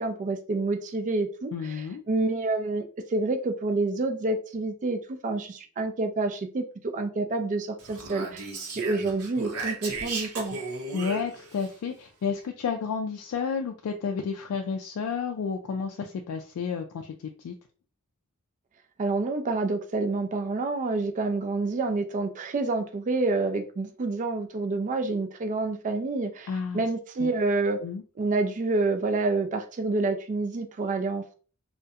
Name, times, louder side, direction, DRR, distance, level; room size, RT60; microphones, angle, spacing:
voice 1, 0.0-2.8 3.1-10.6 19.0-27.8 28.2-31.3, right 3 dB, 35° right, 7 dB, 0.3 m, -28 dB
voice 2, 1.5-2.0 10.9-17.1 17.4-17.5 26.5-26.9 27.2-27.3 27.8-28.0, left 6 dB, 85° left, 4 dB, 0.3 m, -31 dB
Speech, 7.8-11.7, right 3 dB, 85° right, 0.6 m, -35 dB
2.7 x 2.1 x 2.3 m, 0.39 s
head